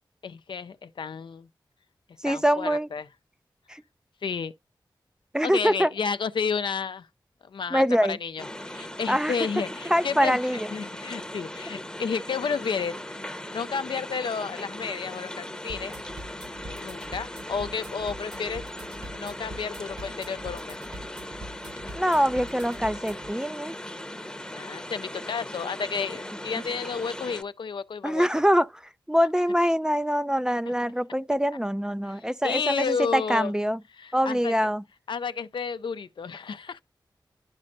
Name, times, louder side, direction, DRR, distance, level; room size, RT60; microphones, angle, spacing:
voice 1, 0.2-1.5 2.3-3.1 4.2-4.5 5.4-7.1 7.5-10.4 10.7-13.0 13.5-15.9 16.7-18.6 19.1-20.8 24.6-28.3 30.7-30.8 32.1-33.5 34.0-34.5 35.1-36.8, left 5 dB, 75° left, 0.4 m, -31 dB
voice 2, 2.2-2.9 3.7-3.8 5.3-5.9 7.7-8.2 9.1-9.3 9.9-10.7 22.0-23.7 26.5-26.6 28.0-28.8 29.1-33.8 34.1-34.8, equal, 10° right, 0.4 m, -24 dB
sound 1, 8.4-27.4, left 1 dB, 10° left, 0.8 m, -39 dB
sound 2, 15.7-23.3, right 1 dB, 60° right, 1.6 m, -44 dB
12.0 x 4.2 x 2.6 m
cardioid pair, 50°, 8 cm